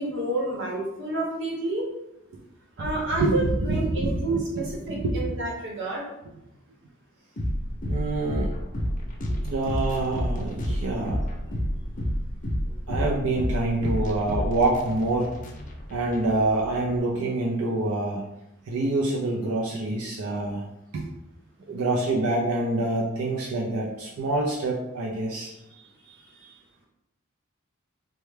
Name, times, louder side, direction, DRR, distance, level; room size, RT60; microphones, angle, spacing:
voice 1, 0.0-1.8 2.8-6.0 25.7-25.8 26.1-26.5, right 2 dB, 55° right, -2 dB, 0.9 m, -30 dB
voice 2, 2.8-4.4 4.9-5.3 7.9-8.5 9.4-11.2 12.9-15.4 15.9-18.2 18.7-20.6 20.9-21.0 21.7-25.5, right 2 dB, 90° right, -3 dB, 0.5 m, -26 dB
sound 1, 7.4-17.0, equal, 35° left, 0.5 m, -30 dB
3.3 x 2.1 x 3.2 m, 0.86 s
head